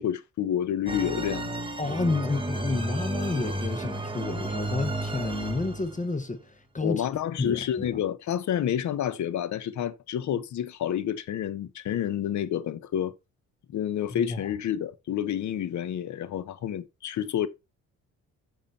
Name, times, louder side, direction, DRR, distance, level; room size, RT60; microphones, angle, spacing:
voice 1, 0.0-1.5 6.8-13.1 13.7-17.5, left 10 dB, 70° left, 1.2 m, -29 dB
sound 1, 0.9-6.1, right 1 dB, 15° right, 1.8 m, -32 dB
voice 2, 1.8-7.1 7.4-7.6 7.9-8.0 14.2-14.5, left 3 dB, 25° left, 1.5 m, -30 dB
9.0 x 6.3 x 4.4 m
cardioid pair, 90°, 30 cm